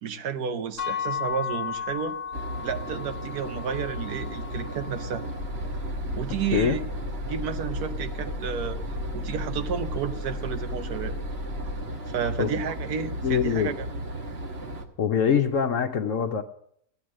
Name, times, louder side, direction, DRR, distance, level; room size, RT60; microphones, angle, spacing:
voice 1, 0.0-2.2 2.6-5.2 6.1-6.8 7.2-8.8 9.1-11.1 12.1-13.7, right 7 dB, 85° right, 9 dB, 1.4 m, -31 dB
sound 1, 0.8-6.6, left 7 dB, 15° left, 1.0 m, -35 dB
sound 2, 2.3-14.9, equal, 45° right, 1.4 m, -35 dB
sound 3, 5.4-11.8, left 1 dB, 35° left, 1.6 m, -36 dB
voice 2, 13.2-13.7 15.0-16.4, left 7 dB, 65° left, 5 dB, 1.0 m, -24 dB
13.5 x 8.6 x 6.3 m, 0.70 s
omnidirectional pair, 1.6 m